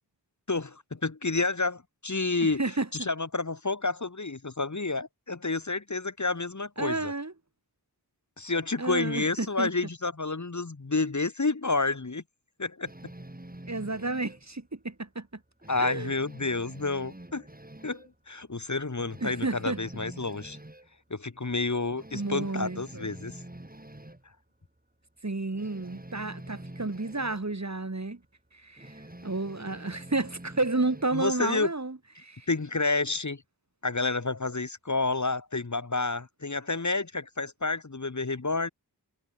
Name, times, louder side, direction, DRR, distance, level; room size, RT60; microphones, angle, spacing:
voice 1, 0.5-2.6 2.9-7.1 8.4-12.2 12.6-12.9 15.7-17.4 17.8-20.6 21.1-23.3 31.1-31.7 32.5-33.4 33.8-38.7, left 3 dB, 45° left, 1.7 m, -29 dB
voice 2, 2.4-3.1 6.8-7.3 8.8-9.7 13.7-15.3 15.8-16.1 19.2-19.8 22.1-23.1 25.2-28.2 28.5-32.5, right 2 dB, 40° right, 2.9 m, -31 dB
sound 1, 12.8-14.5 14.9-15.0 15.4-18.1 18.5-18.6 19.0-20.9 21.4-21.5 21.9-24.2 25.5-27.4 28.8-31.2, right 1 dB, 20° right, 6.1 m, -46 dB
wide cardioid pair, 60°, 41 cm